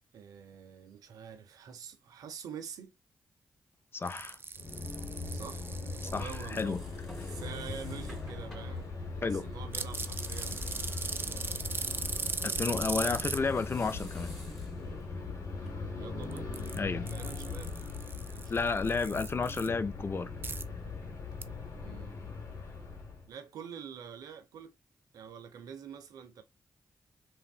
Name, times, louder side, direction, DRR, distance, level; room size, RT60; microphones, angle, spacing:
voice 1, 0.1-3.0 5.3-11.8 12.2-12.5 16.0-16.5 17.0-17.7 18.3-19.0 21.8-22.2 23.3-24.7 25.1-26.4, right 7 dB, 85° right, 0.6 m, -47 dB
voice 2, 3.9-4.4 6.1-6.8 9.2-9.4 12.4-14.4 16.8-17.1 18.5-20.3, left 4 dB, 40° left, 0.4 m, -32 dB
sound 1, 4.1-6.6 9.7-13.4 16.2-16.8 17.1-19.7 20.4-20.6 21.4-21.5, right 4 dB, 35° right, 0.4 m, -38 dB
sound 2, 4.6-23.3, left 4 dB, 60° left, 1.1 m, -40 dB
sound 3, 5.4-15.7, equal, 5° left, 1.8 m, -50 dB
3.4 x 2.2 x 2.3 m
supercardioid pair, 45°, 6 cm